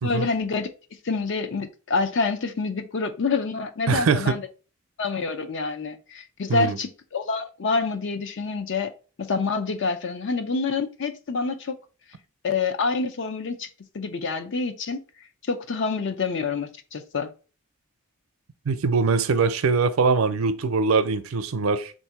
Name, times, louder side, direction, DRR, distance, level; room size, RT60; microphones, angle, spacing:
voice 1, 0.0-0.7 1.0-4.4 5.0-8.9 9.2-11.7 12.4-13.7 13.9-15.0 15.5-17.3, left 4 dB, 60° left, 0.5 m, -27 dB
voice 2, 3.9-4.4 6.5-6.8 18.7-21.9, right 4 dB, 80° right, 0.5 m, -22 dB
3.5 x 2.7 x 4.5 m
head